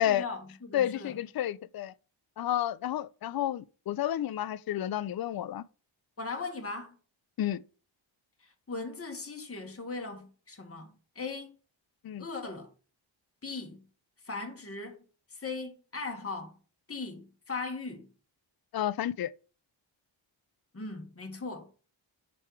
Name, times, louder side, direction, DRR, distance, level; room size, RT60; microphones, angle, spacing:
voice 1, 0.0-1.1 6.2-6.9 8.7-10.9 11.1-11.5 12.2-12.7 13.4-13.8 14.2-15.0 15.3-16.5 16.9-18.1 20.7-21.7, left 3 dB, 30° left, 1.6 m, -38 dB
voice 2, 0.7-1.9 2.4-5.6 7.4-7.6 12.0-12.3 18.7-19.3, left 11 dB, 50° left, 0.5 m, -30 dB
5.5 x 4.4 x 4.7 m
cardioid pair, 65°, 47 cm